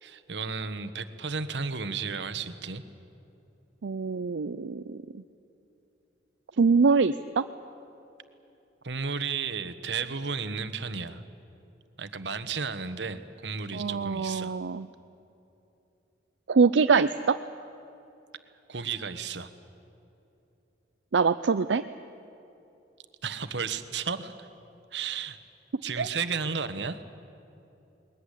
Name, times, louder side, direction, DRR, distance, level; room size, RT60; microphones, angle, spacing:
voice 1, 0.0-2.8 8.8-11.2 12.0-14.5 18.7-19.5 23.2-24.5 24.9-25.4 25.8-27.0, right 5 dB, 75° right, 11 dB, 1.2 m, -33 dB
voice 2, 3.8-5.0 6.6-7.4 13.7-14.9 16.5-17.4 21.1-21.8 26.0-26.1, right 5 dB, 90° right, 10 dB, 0.5 m, -24 dB
21.0 x 21.0 x 9.9 m, 2.9 s
head